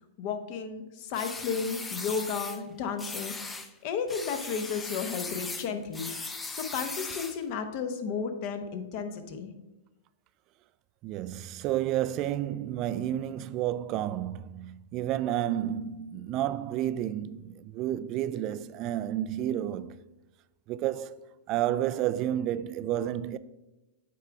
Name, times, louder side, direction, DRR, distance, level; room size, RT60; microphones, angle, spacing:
voice 1, 0.2-6.1 6.5-9.5, left 6 dB, 45° left, 1.0 m, -33 dB
sound 1, 1.1-2.6 3.0-3.7 4.1-7.4, left 3 dB, 10° left, 0.6 m, -38 dB
voice 2, 11.0-19.9 20.7-23.4, right 12 dB, 35° right, 0.3 m, -31 dB
8.9 x 3.6 x 4.6 m
hypercardioid pair, 135°, 0 cm